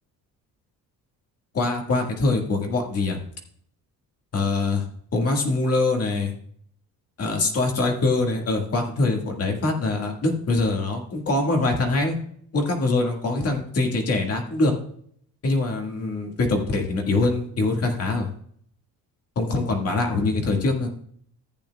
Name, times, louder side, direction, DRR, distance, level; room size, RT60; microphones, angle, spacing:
voice 1, 1.5-3.2 4.3-4.8 5.1-6.3 7.2-12.2 12.5-14.7 15.4-18.3 19.4-20.9, left 2 dB, 40° left, 2 dB, 1.9 m, -23 dB
14.5 x 8.5 x 2.3 m, 0.64 s
cardioid pair, 160°, 36 cm